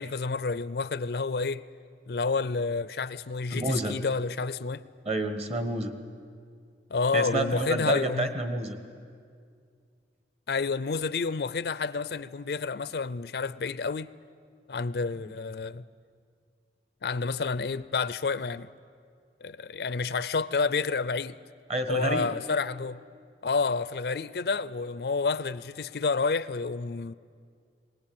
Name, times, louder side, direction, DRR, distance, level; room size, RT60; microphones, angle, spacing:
voice 1, 0.0-1.6 2.1-4.8 6.9-8.3 10.5-14.1 14.7-15.8 17.0-18.7 19.4-21.3 21.9-23.0 23.4-27.1, left 4 dB, 65° left, 0.5 m, -29 dB
voice 2, 3.5-3.9 5.0-5.9 7.1-8.8 15.2-15.3 21.7-22.3, right 2 dB, 35° right, 1.5 m, -29 dB
21.0 x 19.0 x 8.7 m
head